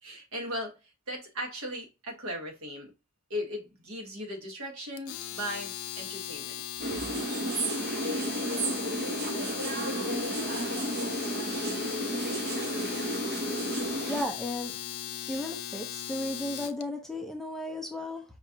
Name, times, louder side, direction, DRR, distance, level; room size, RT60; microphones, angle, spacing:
voice 1, 0.0-2.9 3.3-6.6 6.9-7.0, equal, 70° right, 1.3 m, -38 dB
Domestic sounds home sounds, 5.0-16.8, left 11 dB, 70° left, 0.4 m, -38 dB
sound 1, 6.8-14.2, right 1 dB, 50° right, 0.8 m, -32 dB
voice 2, 14.1-14.8 15.3-18.2, left 1 dB, ahead, 0.4 m, -34 dB
5.1 x 2.5 x 2.7 m
head